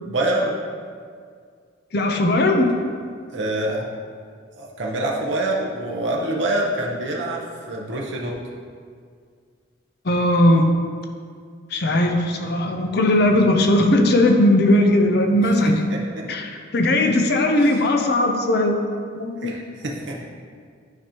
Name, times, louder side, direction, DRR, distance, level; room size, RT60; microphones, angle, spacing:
voice 1, 0.1-0.6 3.3-3.9 4.6-8.3 15.6-16.0 17.6-17.8 19.4-20.2, right 1 dB, 70° right, -2 dB, 0.8 m, -26 dB
voice 2, 1.9-2.8 10.1-10.7 11.7-15.8 16.3-18.8 19.1-19.5, left 1 dB, 55° left, 4 dB, 0.6 m, -18 dB
9.7 x 5.0 x 3.0 m, 2.1 s
head